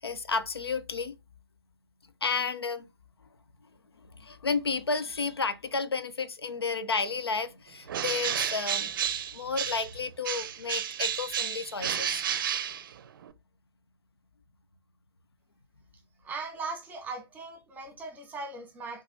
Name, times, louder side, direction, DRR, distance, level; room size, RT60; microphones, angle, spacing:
voice 1, 0.0-1.2 2.2-2.9 4.1-8.9 9.3-12.2, left 4 dB, 80° left, 0.5 m, -32 dB
Bird, 7.9-10.0 10.2-13.3, right 9 dB, 55° right, 0.5 m, -31 dB
voice 2, 16.2-19.0, right 3 dB, 10° right, 1.2 m, -39 dB
6.5 x 2.6 x 2.8 m
figure-of-eight pair, 110°, 13 cm